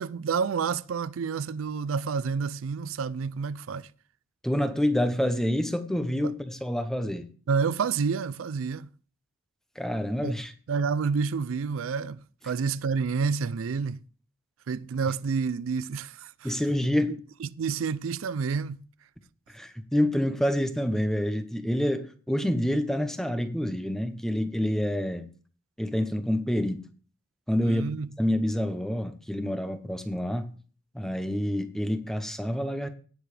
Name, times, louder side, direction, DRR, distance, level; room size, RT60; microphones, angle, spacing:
voice 1, 0.0-3.9 7.5-8.9 10.2-10.3 10.7-14.0 14.7-16.5 17.4-18.8 27.6-28.2, right 5 dB, 85° right, 0.4 m, -29 dB
voice 2, 4.4-7.3 9.8-10.5 16.4-17.2 19.5-25.3 25.8-26.8 27.5-27.8 28.2-30.5 30.9-32.9, equal, ahead, 0.8 m, -27 dB
17.5 x 7.0 x 3.3 m
head